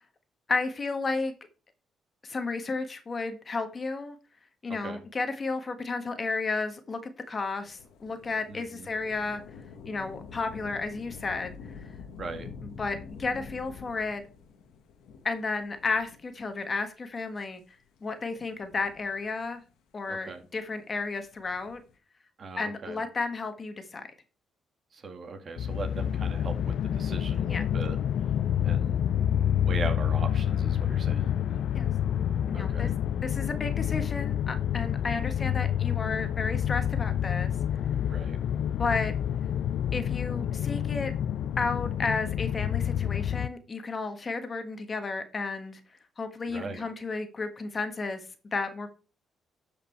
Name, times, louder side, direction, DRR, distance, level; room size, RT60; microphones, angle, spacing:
voice 1, 0.5-1.3 2.2-4.1 4.6-9.4 9.8-11.8 12.6-14.2 15.2-17.6 18.0-19.6 19.9-21.8 22.6-24.1 27.5-27.6 31.7-31.9 32.5-32.9 33.2-37.5 38.8-39.1 39.9-41.1 41.6-45.8 46.2-48.2 48.5-48.9, left 3 dB, 35° left, 8 dB, 1.4 m, -32 dB
voice 2, 4.7-5.0 8.5-8.9 12.2-12.5 20.1-20.4 22.4-23.0 24.9-28.0 28.6-29.0 29.5-31.6 32.5-32.9 38.1-38.4 46.5-46.9, right 4 dB, 45° right, 6 dB, 2.0 m, -39 dB
Thunder / Rain, 7.6-16.6 17.4-17.5 18.4-19.7 21.2-21.9, left 5 dB, 85° left, 1.4 m, -46 dB
sound 1, 25.6-43.5, left 10 dB, 70° left, 0.4 m, -28 dB
12.0 x 5.1 x 4.5 m, 0.36 s
cardioid pair, 90°, 0 cm